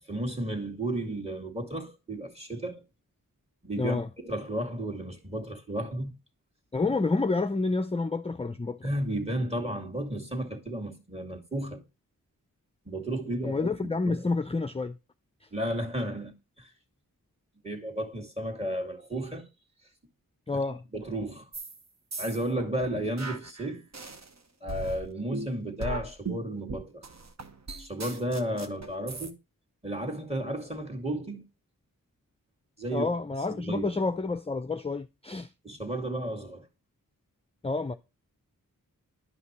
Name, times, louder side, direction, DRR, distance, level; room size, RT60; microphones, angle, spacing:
voice 1, 0.1-2.8 3.6-6.2 8.8-11.8 12.9-14.2 15.5-16.7 17.6-19.5 20.5-20.6 20.9-21.5 22.2-23.8 24.6-27.0 27.8-29.3 29.8-31.4 32.8-33.1 33.5-33.9 35.6-36.7, right 1 dB, 20° right, 2.3 m, -33 dB
voice 2, 3.8-4.1 6.7-8.9 13.4-15.0 20.5-20.8 32.9-35.5 37.6-37.9, left 3 dB, 20° left, 0.5 m, -29 dB
sound 1, 21.5-21.8 22.1-24.3 24.7-29.3, right 3 dB, 50° right, 1.1 m, -38 dB
11.0 x 5.7 x 3.1 m
wide cardioid pair, 65°, 34 cm